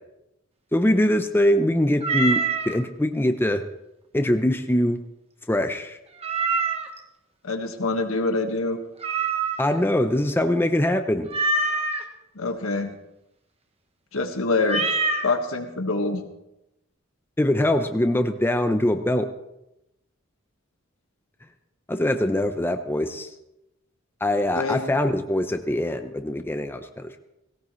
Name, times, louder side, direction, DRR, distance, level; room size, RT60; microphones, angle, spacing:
voice 1, 0.7-3.6 4.1-5.0 5.5-6.0 9.6-11.3 17.4-19.3 21.9-23.3 24.2-27.2, left 1 dB, 10° left, 7 dB, 0.6 m, -23 dB
Meow, 2.0-2.7 6.2-7.0 9.0-9.8 11.3-12.0 14.6-15.3, right 3 dB, 30° right, 1.2 m, -25 dB
voice 2, 7.4-8.8 12.3-12.9 14.1-14.9 15.2-16.2 24.6-24.9, left 3 dB, 80° left, 5 dB, 1.5 m, -25 dB
17.5 x 17.0 x 3.1 m, 0.89 s
head